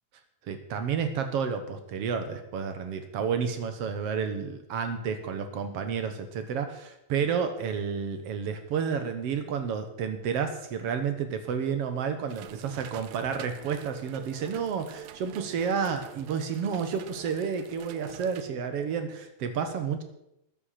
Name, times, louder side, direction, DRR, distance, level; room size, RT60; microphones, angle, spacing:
voice 1, 0.5-20.0, right 6 dB, 65° right, 8 dB, 1.6 m, -31 dB
sound 1, 12.3-18.4, right 12 dB, 85° right, 2.4 m, -46 dB
14.0 x 10.0 x 5.8 m, 0.83 s
omnidirectional pair, 4.1 m